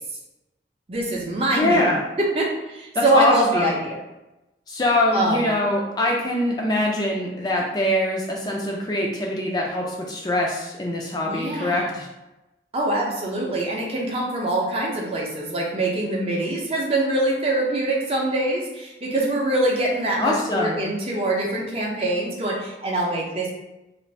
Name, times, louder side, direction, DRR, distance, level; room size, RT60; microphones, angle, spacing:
voice 1, 0.9-1.9 2.3-4.0 5.1-5.4 11.3-11.9 12.7-23.5, right 1 dB, 35° right, -2 dB, 0.5 m, -24 dB
voice 2, 1.6-2.0 2.9-3.7 4.7-12.1 20.2-20.8, left 1 dB, 25° left, -1 dB, 0.3 m, -23 dB
2.5 x 2.5 x 3.2 m, 0.98 s
head